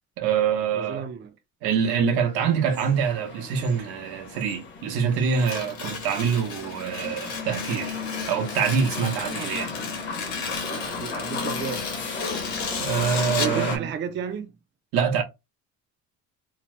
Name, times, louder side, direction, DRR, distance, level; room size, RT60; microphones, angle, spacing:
voice 1, 0.2-1.1 1.6-8.0 8.3-9.7 12.8-13.9 14.9-15.2, right 7 dB, 90° right, 0.9 m, -25 dB
voice 2, 0.7-1.3 9.2-9.7 10.8-11.9 13.4-14.6, right 7 dB, 30° right, 0.5 m, -33 dB
sound 1, 2.3-13.8, left 4 dB, 30° left, 0.8 m, -34 dB
Tearing, 5.3-13.6, left 5 dB, 50° left, 1.1 m, -35 dB
2.9 x 2.0 x 3.1 m
cardioid pair, 150°, 36 cm